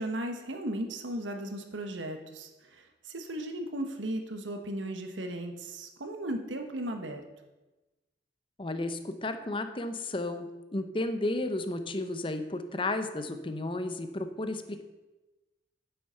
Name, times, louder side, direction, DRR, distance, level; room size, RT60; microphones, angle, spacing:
voice 1, 0.0-7.2, right 1 dB, 85° right, 5 dB, 1.1 m, -36 dB
voice 2, 8.6-14.8, left 2 dB, 30° left, 9 dB, 0.7 m, -33 dB
9.2 x 7.8 x 5.6 m, 1.1 s
head